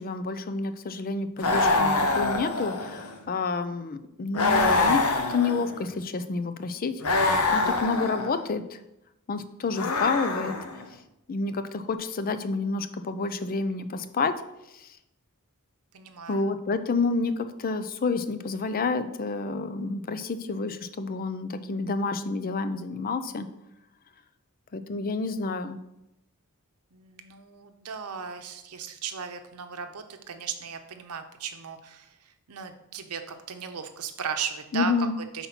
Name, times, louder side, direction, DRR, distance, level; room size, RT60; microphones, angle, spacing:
voice 1, 0.0-8.8 9.3-10.6 11.3-14.3 14.7-14.9 16.3-23.5 24.7-25.8 34.7-35.2, left 4 dB, 40° left, 11 dB, 0.5 m, -29 dB
sound 1, 1.4-3.2 4.3-5.9 7.0-8.4 9.7-10.8, left 3 dB, 85° left, 0.9 m, -25 dB
voice 2, 15.9-16.5 26.9-35.5, right 6 dB, 85° right, 7 dB, 0.7 m, -36 dB
5.6 x 4.2 x 5.9 m, 0.89 s
head